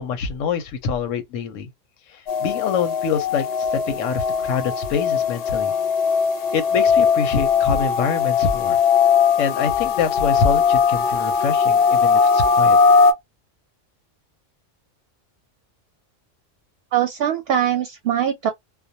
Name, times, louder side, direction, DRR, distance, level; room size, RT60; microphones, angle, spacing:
voice 1, 0.0-1.7 2.1-5.7 6.5-8.8 9.4-12.8, left 6 dB, 90° left, 1.0 m, -25 dB
sound 1, 2.3-13.1, left 6 dB, 60° left, 0.7 m, -19 dB
voice 2, 16.9-18.5, right 10 dB, 65° right, 0.7 m, -22 dB
2.3 x 2.1 x 2.7 m
omnidirectional pair, 1.3 m